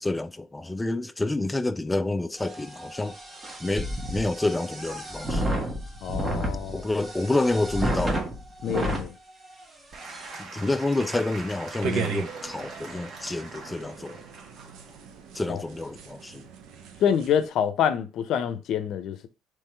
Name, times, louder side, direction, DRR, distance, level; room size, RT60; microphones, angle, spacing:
voice 1, 0.0-3.2 3.6-5.6 6.7-8.3 10.4-14.2 15.3-16.4, left 2 dB, 10° left, 0.3 m, -28 dB
sound 1, 2.4-9.1 9.6-9.7 10.0-10.4, right 1 dB, 20° right, 1.0 m, -31 dB
voice 2, 6.0-6.9 8.6-9.1 15.5-15.6 17.0-19.3, left 8 dB, 60° left, 0.6 m, -26 dB
Applause / Crowd, 9.9-16.2, right 4 dB, 55° right, 1.2 m, -43 dB
sound 2, 11.8-17.5, right 7 dB, 70° right, 0.7 m, -37 dB
3.6 x 3.1 x 4.4 m
cardioid pair, 125°, 0 cm